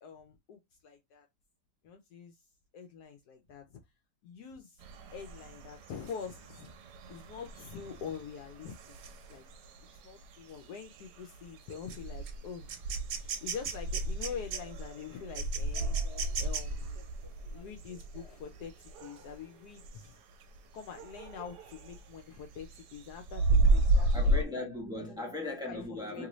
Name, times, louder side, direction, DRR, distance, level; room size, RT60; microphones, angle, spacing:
voice 1, 0.0-1.3 1.8-2.4 2.7-3.7 4.2-4.8 5.1-6.7 7.1-9.0 9.3-9.4 10.0-12.8 13.1-16.0 16.4-17.0 17.5-20.2 20.7-24.4 25.0-25.3 25.7-26.3, left 7 dB, 75° left, 1.1 m, -45 dB
sound 1, 4.8-19.4 19.8-20.1 20.4-22.1 22.4-24.4, right 2 dB, 80° right, 1.2 m, -33 dB
Subway metro underground, 12.0-19.9, left 2 dB, 25° left, 0.8 m, -61 dB
voice 2, 24.1-26.3, left 2 dB, 5° right, 0.5 m, -38 dB
3.0 x 2.5 x 3.0 m
omnidirectional pair, 1.8 m